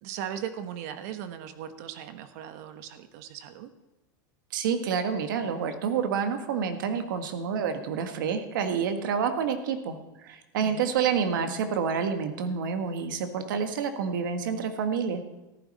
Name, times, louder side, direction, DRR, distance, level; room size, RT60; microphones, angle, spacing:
voice 1, 0.0-3.7 10.6-10.9, right 9 dB, 55° right, 10 dB, 1.2 m, -38 dB
voice 2, 4.5-15.2, right 6 dB, 85° right, 8 dB, 1.5 m, -28 dB
14.5 x 12.0 x 4.2 m, 1.1 s
supercardioid pair, 165°, 11 cm